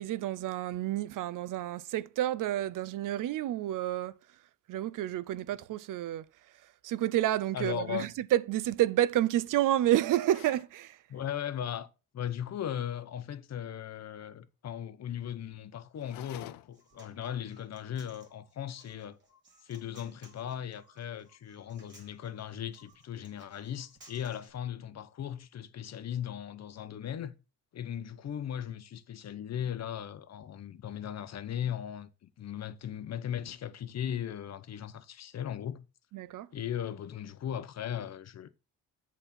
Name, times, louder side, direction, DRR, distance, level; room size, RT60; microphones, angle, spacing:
voice 1, 0.0-4.2 4.7-6.3 6.8-11.0 36.1-36.5, right 13 dB, 65° right, 0.5 m, -29 dB
voice 2, 7.5-8.1 11.1-11.9 12.1-19.2 19.6-27.3 27.7-35.8 36.5-38.5, left 9 dB, 50° left, 0.9 m, -38 dB
sound 1, 10.1-10.7 16.0-16.9, left 15 dB, 85° left, 0.6 m, -49 dB
Human voice, 16.5-24.5, right 1 dB, 35° right, 2.8 m, -60 dB
8.0 x 4.1 x 5.8 m
cardioid pair, 125°, 34 cm